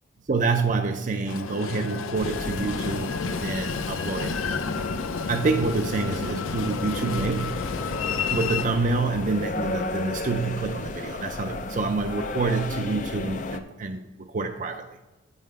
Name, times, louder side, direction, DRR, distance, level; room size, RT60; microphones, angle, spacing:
voice 1, 0.3-4.3 5.3-7.6 8.3-14.0 14.3-15.0, right 3 dB, 40° right, 4 dB, 0.4 m, -27 dB
Train, 1.3-8.7, left 5 dB, 90° left, 0.5 m, -30 dB
sound 1, 2.1-13.6, left 2 dB, 40° left, 0.5 m, -34 dB
8.6 x 5.6 x 4.7 m, 1.1 s
head